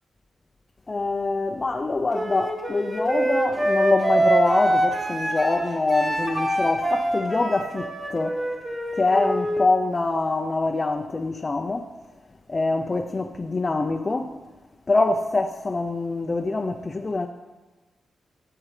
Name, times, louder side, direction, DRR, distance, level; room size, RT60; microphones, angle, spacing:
voice 1, 0.9-8.4 9.0-11.9 12.5-14.3 14.9-17.3, left 3 dB, 25° left, 0.5 m, -24 dB
Wind instrument woodwind instrument, 2.1-9.6, right 1 dB, 25° right, 2.2 m, -24 dB
17.5 x 8.7 x 3.2 m
wide cardioid pair, 165°, 0 cm